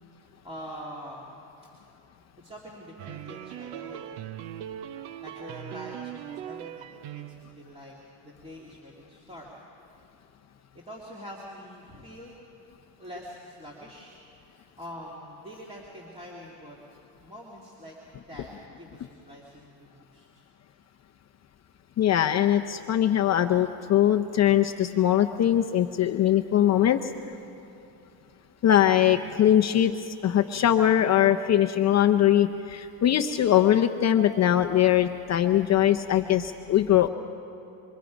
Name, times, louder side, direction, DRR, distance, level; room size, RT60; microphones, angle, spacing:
voice 1, 0.1-1.4 2.4-4.1 5.2-9.5 10.7-12.3 13.0-14.2 14.4-16.8 17.2-17.9 18.2-20.4, equal, 10° right, -4 dB, 2.5 m, -44 dB
sound 1, 3.0-7.6, right 11 dB, 90° right, 1.0 m, -40 dB
voice 2, 22.0-27.1 28.6-37.1, left 11 dB, 35° left, 6 dB, 0.6 m, -21 dB
28.0 x 25.0 x 5.2 m, 2.9 s
cardioid pair, 135°, 50 cm